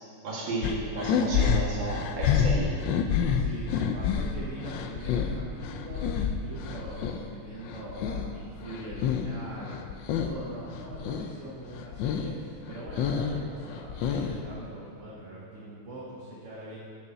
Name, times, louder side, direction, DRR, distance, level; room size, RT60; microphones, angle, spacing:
voice 1, 0.2-2.7, right 2 dB, 60° right, -5 dB, 2.4 m, -32 dB
sound 1, 0.6-7.2 7.6-9.4 9.6-10.4 10.7-11.3 11.7-12.3 12.7-14.5, left 7 dB, 75° left, 1.1 m, -28 dB
voice 2, 3.3-16.8, right 1 dB, 40° right, -6 dB, 1.3 m, -42 dB
6.9 x 6.7 x 5.7 m, 2.2 s
omnidirectional pair, 2.4 m